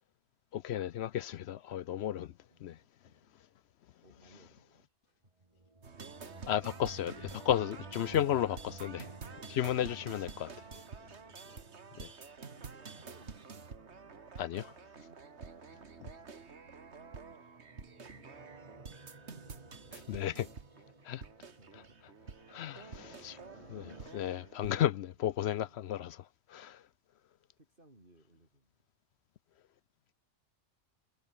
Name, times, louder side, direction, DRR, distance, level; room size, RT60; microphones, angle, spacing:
voice 1, 0.5-2.3 2.6-2.7 6.5-9.0 9.5-10.5 12.0-12.1 14.4-14.7 19.9-20.5 21.1-21.2 22.5-22.8 23.2-23.3 23.7-23.8 24.1-26.2 26.5-26.8, left 11 dB, 65° left, 0.8 m, -33 dB
voice 2, 2.2-3.3 4.0-5.3 9.0-9.2 10.7-11.7 12.4-13.6 18.0-19.4 21.2-24.4 24.9-25.9 27.6-28.8, right 1 dB, 45° right, 6.7 m, -65 dB
sound 1, 5.4-16.1 17.3-24.1, right 2 dB, 25° right, 2.1 m, -55 dB
sound 2, 5.8-24.8, right 5 dB, 65° right, 2.1 m, -49 dB
omnidirectional pair, 1.3 m